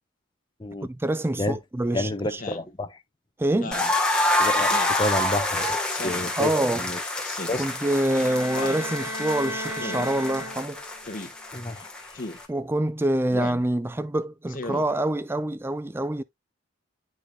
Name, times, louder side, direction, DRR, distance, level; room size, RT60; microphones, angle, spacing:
voice 1, 0.8-2.4 3.4-3.8 6.4-6.8 7.6-10.8 12.5-16.2, right 1 dB, 10° right, 0.3 m, -26 dB
voice 2, 1.9-3.0 4.4-7.0 7.5-7.6 11.5-12.3, left 1 dB, 20° left, 0.8 m, -30 dB
Speech synthesizer, 2.4-2.7 3.5-3.9 4.7-5.0 5.9-6.3 7.2-7.7 8.5-8.9 9.8-10.1 11.0-11.3 12.1-12.4 13.3-13.6 14.5-14.9, left 2 dB, 40° left, 1.1 m, -36 dB
sound 1, 3.7-12.4, left 1 dB, 5° left, 1.2 m, -27 dB
sound 2, 7.7-11.0, left 1 dB, 90° right, 3.0 m, -35 dB
10.5 x 4.7 x 2.2 m
head